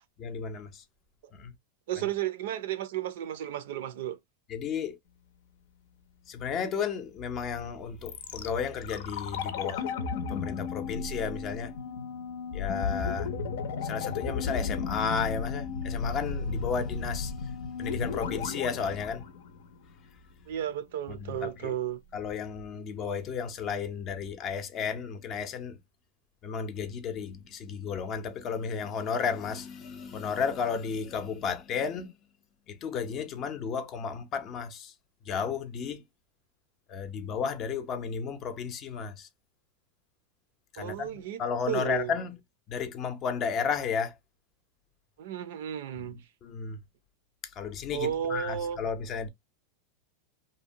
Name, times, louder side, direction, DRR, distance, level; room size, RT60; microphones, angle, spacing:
voice 1, 0.2-0.8 1.3-1.5 2.0-2.1 4.5-5.0 6.3-9.9 10.3-11.7 12.5-13.3 13.8-19.2 21.1-21.7 22.1-25.8 26.4-32.1 32.7-34.9 35.3-36.0 36.9-39.3 40.7-42.4 42.7-44.2 46.0-46.1 46.4-46.8 47.6-49.3, left 6 dB, 30° left, 0.5 m, -33 dB
voice 2, 1.9-4.2 20.5-22.0 40.8-41.4 41.7-42.1 45.2-46.2 47.9-48.8, right 10 dB, 70° right, 0.5 m, -33 dB
sound 1, 8.1-20.1 20.3-20.4, left 5 dB, 75° left, 0.6 m, -34 dB
2.7 x 2.1 x 2.7 m
supercardioid pair, 150°, 0 cm